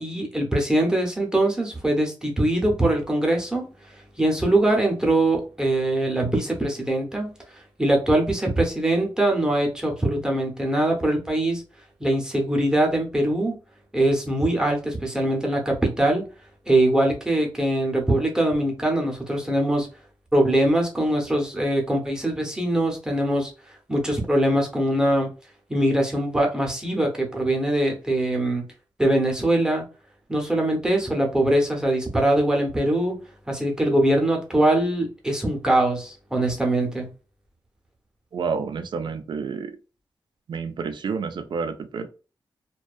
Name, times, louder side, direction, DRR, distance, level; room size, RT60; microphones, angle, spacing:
voice 1, 0.0-3.6 4.2-7.3 7.8-11.6 12.0-13.5 13.9-16.2 16.7-19.9 20.3-23.5 23.9-25.3 25.7-28.6 29.0-29.8 30.3-33.2 33.5-37.1, right 1 dB, 10° right, 1 dB, 0.7 m, -22 dB
voice 2, 38.3-39.8 40.5-42.1, right 5 dB, 65° right, 9 dB, 0.4 m, -29 dB
2.6 x 2.2 x 2.3 m, 0.34 s
wide cardioid pair, 150°, 9 cm